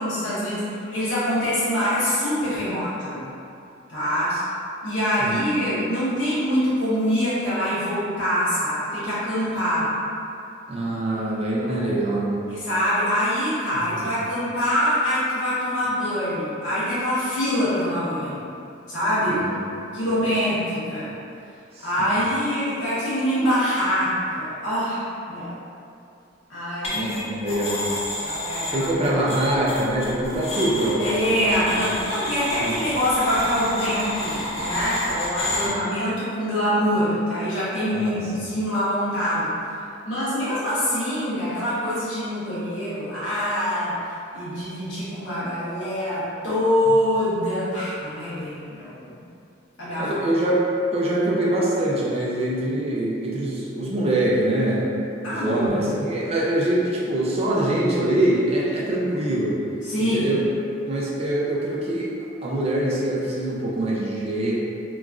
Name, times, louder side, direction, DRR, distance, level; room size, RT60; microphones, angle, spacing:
voice 1, 0.0-3.3 3.9-4.4 4.8-9.9 12.5-18.4 18.9-19.4 19.9-21.1 21.8-25.5 26.5-27.3 28.2-28.9 31.0-39.5 40.0-44.0 44.3-49.2 49.8-50.2 55.2-55.9 59.8-60.3, equal, 85° left, -11 dB, 1.1 m, -24 dB
voice 2, 10.7-12.4 14.0-14.3 19.3-19.6 20.0-20.1 21.7-22.2 26.9-28.0 28.7-31.5 31.8-31.9 32.6-32.8 35.5-36.0 37.9-38.2 50.0-50.7 50.9-55.0 55.3-59.6 60.0-60.4 60.8-62.1 62.4-64.5, right 1 dB, 35° right, -4 dB, 0.4 m, -24 dB
sound 1, 26.8-27.2 27.5-35.7, left 1 dB, 35° left, 0.5 m, -30 dB
2.9 x 2.3 x 2.4 m, 2.6 s
head